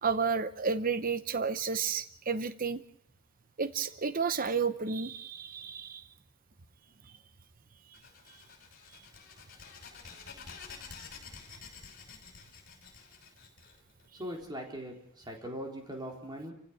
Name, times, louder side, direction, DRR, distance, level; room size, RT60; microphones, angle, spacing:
voice 1, 0.0-2.8 3.6-6.0, right 5 dB, 40° right, 12 dB, 0.8 m, -31 dB
sound 1, 7.9-14.4, left 5 dB, 40° left, 5.6 m, -50 dB
voice 2, 14.1-16.5, equal, 20° right, 1 dB, 4.1 m, -40 dB
29.5 x 16.0 x 6.3 m, 0.65 s
head